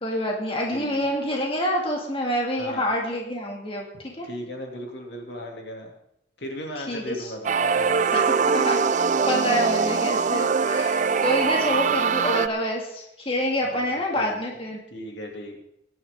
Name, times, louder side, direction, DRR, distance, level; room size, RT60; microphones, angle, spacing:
voice 1, 0.0-3.9 4.2-4.3 6.9-7.3 8.1-8.2 8.5-14.8, equal, 30° left, 0 dB, 2.2 m, -27 dB
voice 2, 0.7-1.0 2.6-2.9 3.9-5.9 6.4-8.1 11.4-12.0 13.6-14.4 14.9-15.6, equal, 65° left, 1 dB, 2.6 m, -37 dB
sound 1, 7.4-12.5, right 5 dB, 45° right, 0.5 m, -22 dB
21.0 x 10.5 x 3.6 m, 0.79 s
head